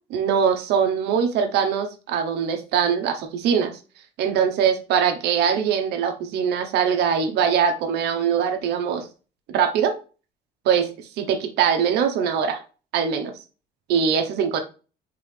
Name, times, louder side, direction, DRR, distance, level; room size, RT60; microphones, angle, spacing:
voice 1, 0.1-3.8 4.2-9.1 9.5-9.9 10.6-10.9 11.2-12.6 12.9-13.3 13.9-14.6, right 7 dB, 80° right, 6 dB, 1.0 m, -22 dB
3.8 x 3.8 x 3.3 m, 0.35 s
cardioid pair, 110°, 17 cm